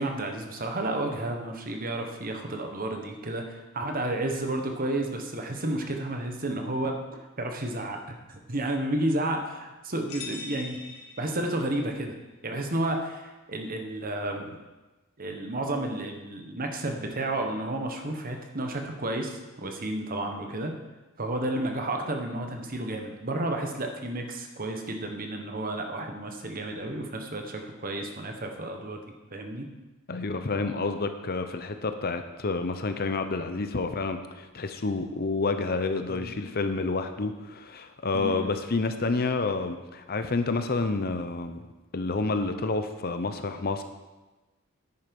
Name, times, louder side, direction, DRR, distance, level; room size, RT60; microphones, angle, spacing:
voice 1, 0.0-7.0 7.4-10.8 11.2-12.1 12.4-14.6 15.2-20.7 21.2-29.0 29.3-29.7 36.1-36.3 38.1-38.5, right 1 dB, 40° right, 4 dB, 1.3 m, -31 dB
sound 1, 10.1-11.9, left 4 dB, 65° left, 1.7 m, -42 dB
voice 2, 30.1-41.6 41.9-43.8, left 3 dB, 45° left, 8 dB, 0.7 m, -29 dB
9.7 x 9.3 x 5.4 m, 1.1 s
head